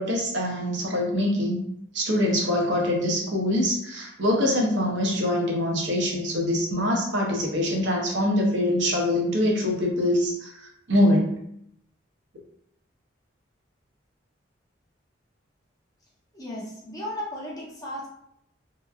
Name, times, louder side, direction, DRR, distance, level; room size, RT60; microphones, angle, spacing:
voice 1, 0.0-1.6 1.9-11.3, left 1 dB, 70° right, -1 dB, 0.7 m, -24 dB
voice 2, 16.3-18.1, left 1 dB, 20° left, -5 dB, 0.6 m, -35 dB
2.9 x 2.1 x 2.3 m, 0.74 s
head